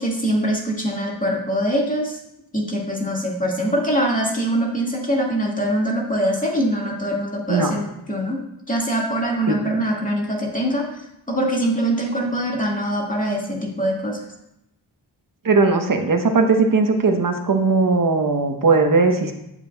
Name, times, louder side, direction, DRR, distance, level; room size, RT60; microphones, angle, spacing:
voice 1, 0.0-2.2 2.5-8.4 8.7-10.8 11.3-14.2, right 1 dB, 15° left, -2 dB, 1.9 m, -23 dB
voice 2, 15.4-19.3, right 4 dB, 45° right, 5 dB, 1.0 m, -18 dB
8.4 x 7.3 x 2.3 m, 0.83 s
cardioid pair, 45°, 46 cm